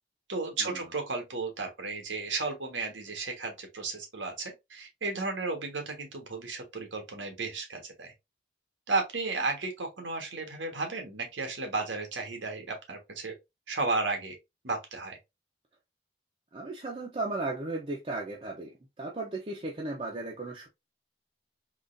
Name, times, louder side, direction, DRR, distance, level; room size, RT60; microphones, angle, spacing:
voice 1, 0.3-8.1 8.9-13.3 13.7-14.3 14.6-15.2, right 3 dB, 90° right, 1.4 m, -33 dB
voice 2, 16.5-20.7, right 2 dB, 30° right, 0.6 m, -36 dB
3.8 x 3.0 x 2.5 m
head